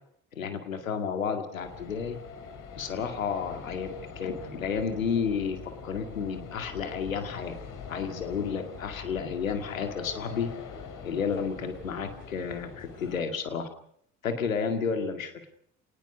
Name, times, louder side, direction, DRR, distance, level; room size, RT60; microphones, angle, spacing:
voice 1, 0.3-2.2 2.8-7.6 7.9-10.5 11.0-13.7 14.2-15.5, left 6 dB, 85° left, 8 dB, 2.2 m, -31 dB
sound 1, 1.6-13.2, left 6 dB, 50° left, 3.7 m, -43 dB
27.0 x 19.0 x 5.3 m, 0.64 s
figure-of-eight pair, 55°, 39 cm